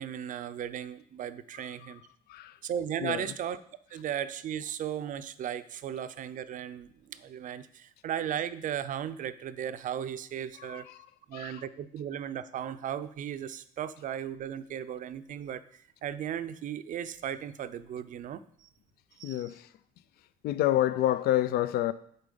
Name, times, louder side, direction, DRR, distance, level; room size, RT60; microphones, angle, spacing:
voice 1, 0.0-2.0 2.6-3.6 3.9-10.9 11.3-18.7 19.2-19.5, right 9 dB, 50° right, 0.5 m, -36 dB
voice 2, 10.6-11.0 11.3-11.6 19.2-19.7 20.4-21.9, left 13 dB, 65° left, 0.4 m, -28 dB
8.2 x 4.2 x 5.4 m
cardioid pair, 110°, 17 cm